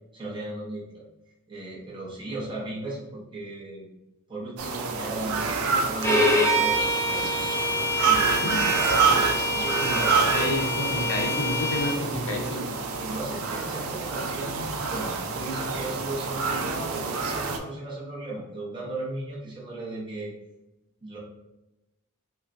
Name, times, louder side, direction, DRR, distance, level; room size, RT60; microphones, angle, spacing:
voice 1, 0.1-1.1 1.5-3.9 4.3-7.3 8.0-8.8 9.5-10.2 13.0-20.3 21.0-21.2, right 2 dB, 20° right, -6 dB, 0.9 m, -36 dB
sound 1, 4.6-17.6, right 5 dB, 70° right, 0.5 m, -27 dB
Bowed string instrument, 6.0-12.0, left 1 dB, 10° left, 0.5 m, -26 dB
voice 2, 9.8-12.7, left 1 dB, 65° left, 0 dB, 0.8 m, -30 dB
5.6 x 2.2 x 2.6 m, 0.96 s
head